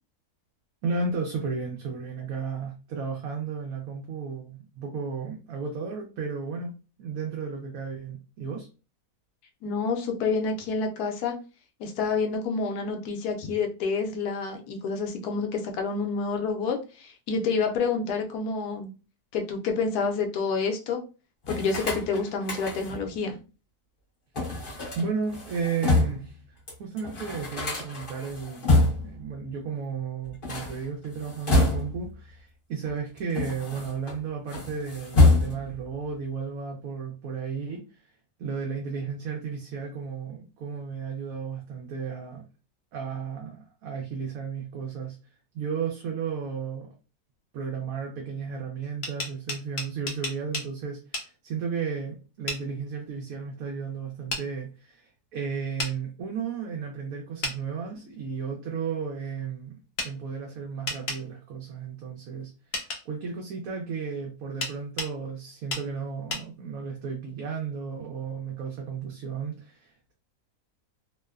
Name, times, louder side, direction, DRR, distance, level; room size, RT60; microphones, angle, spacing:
voice 1, 0.8-6.7 7.0-8.7 24.9-28.7 29.0-38.1 38.4-42.4 42.9-45.2 45.5-46.9 47.5-70.1, right 5 dB, 70° right, 0.9 m, -34 dB
voice 2, 9.6-11.4 11.8-18.9 19.3-21.0 21.5-23.4, left 4 dB, 90° left, 1.2 m, -28 dB
sound 1, 21.4-23.1 24.3-26.3 26.7-26.8 27.0-29.2 30.3-32.1 32.9-34.1 34.5-35.8, left 2 dB, 40° left, 1.1 m, -26 dB
sound 2, 48.8-50.7 51.1-51.3 52.5-52.6 54.3-54.4 55.8-55.9 57.4-57.6 60.0-60.1 60.9-61.2 62.7-63.0 64.6-65.1 65.7-65.9 66.3-66.4, left 2 dB, 60° left, 0.7 m, -32 dB
3.0 x 2.0 x 2.3 m
omnidirectional pair, 1.6 m